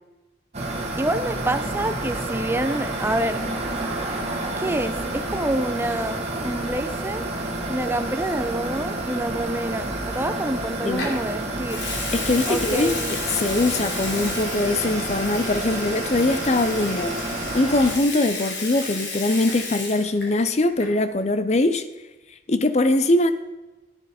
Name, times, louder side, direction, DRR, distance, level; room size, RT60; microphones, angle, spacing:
sound 1, 0.5-17.9, right 2 dB, 35° right, 1.7 m, -29 dB
voice 1, 1.0-3.4 4.6-7.3 7.7-11.8 12.5-13.0, right 1 dB, 10° right, 9 dB, 0.5 m, -27 dB
Water tap faucet / Sink (filling or washing) / Liquid, 11.0-11.2 11.6-20.4 20.7-21.0, left 3 dB, 65° left, 2.9 m, -32 dB
voice 2, 12.1-17.2 17.5-21.8 22.5-23.3, left 2 dB, 35° left, 11 dB, 0.5 m, -22 dB
10.5 x 10.0 x 4.2 m, 1.1 s
head